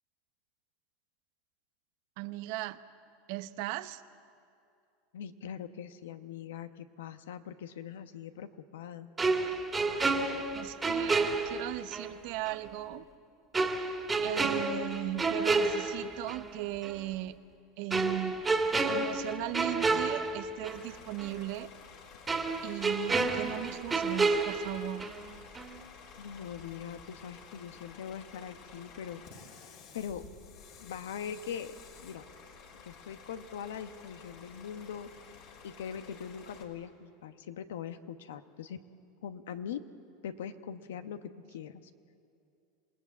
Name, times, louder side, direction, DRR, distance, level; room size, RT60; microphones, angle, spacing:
voice 1, 2.2-2.8 3.3-4.0 10.5-13.1 14.2-17.4 17.8-18.3 18.9-21.7 22.6-25.1, right 16 dB, 65° right, 12 dB, 0.8 m, -37 dB
voice 2, 5.1-9.1 26.2-29.2 29.6-30.3 30.8-31.7 32.0-32.2 32.8-35.1 35.6-38.8 39.2-39.8 40.2-41.8, left 8 dB, 85° left, 10 dB, 1.0 m, -42 dB
sound 1, 9.2-12.1 12.5-12.6 13.5-16.5 16.8-17.0 17.9-20.9 21.2-21.3 22.3-25.3 25.6-25.8, right 3 dB, 20° right, 2.1 m, -30 dB
Bus / Idling, 20.7-36.6, left 6 dB, 60° left, 3.7 m, -52 dB
27.0 x 18.5 x 8.4 m, 2.5 s
supercardioid pair, 110°, 0 cm